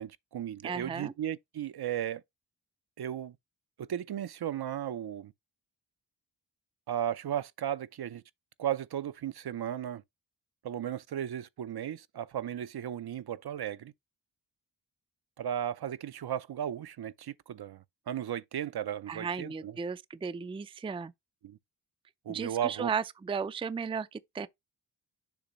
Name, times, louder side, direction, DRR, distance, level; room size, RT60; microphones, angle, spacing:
voice 1, 0.0-2.2 3.0-3.4 3.8-5.3 6.9-8.2 8.6-10.0 10.6-13.9 15.4-19.8 21.4-21.6 22.3-22.9, right 10 dB, 65° right, 0.5 m, -35 dB
voice 2, 0.6-1.1 19.1-21.1 22.3-24.5, right 6 dB, 15° right, 0.3 m, -35 dB
7.0 x 2.7 x 5.1 m
wide cardioid pair, 70°, 42 cm